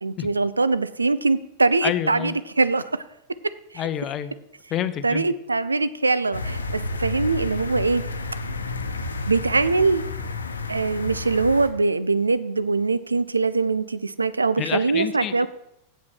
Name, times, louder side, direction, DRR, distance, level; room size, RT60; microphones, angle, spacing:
voice 1, 0.0-3.0 3.7-3.8 5.0-8.0 9.3-10.0 10.7-15.5, right 3 dB, 80° right, 15 dB, 0.4 m, -22 dB
voice 2, 1.8-2.4 3.8-4.3 4.7-5.2 14.6-15.5, left 10 dB, 30° left, 13 dB, 0.7 m, -28 dB
sound 1, 6.3-11.7, left 2 dB, 75° left, 0.9 m, -31 dB
8.4 x 7.4 x 6.3 m, 0.86 s
figure-of-eight pair, 90°, 0 cm